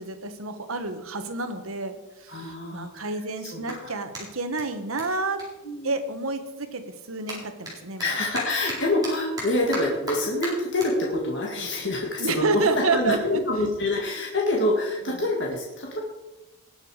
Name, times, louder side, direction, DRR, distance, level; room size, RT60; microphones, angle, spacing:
voice 1, 0.0-2.0 2.2-5.4 5.8-8.0 12.2-13.4, right 3 dB, 85° right, 8 dB, 1.4 m, -29 dB
voice 2, 2.3-3.1 3.5-3.9 5.6-5.9 8.0-16.0, left 2 dB, 55° left, -2 dB, 2.1 m, -26 dB
Clapping, 3.6-6.4 6.7-13.3, right 1 dB, 20° right, 4.0 m, -40 dB
19.5 x 6.8 x 4.9 m, 1.0 s
head